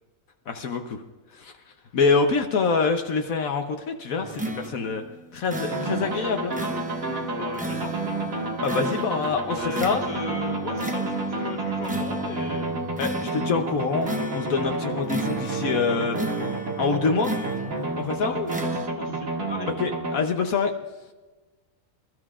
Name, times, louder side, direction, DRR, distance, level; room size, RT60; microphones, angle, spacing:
voice 1, 0.5-1.0 1.3-1.5 1.9-5.0 5.3-6.5 8.6-10.0 13.0-16.2 16.8-17.3 17.9-18.3 19.8-20.7, left 4 dB, 70° left, 5 dB, 1.3 m, -25 dB
sound 1, 4.2-18.0 18.5-18.9, right 1 dB, 10° right, 0.6 m, -34 dB
sound 2, 5.7-20.2, right 2 dB, 65° right, 2.3 m, -30 dB
voice 2, 7.3-8.0 9.5-12.7 18.2-19.7, left 2 dB, 30° left, 1 dB, 1.6 m, -36 dB
25.5 x 13.5 x 2.5 m, 1.2 s
omnidirectional pair, 1.5 m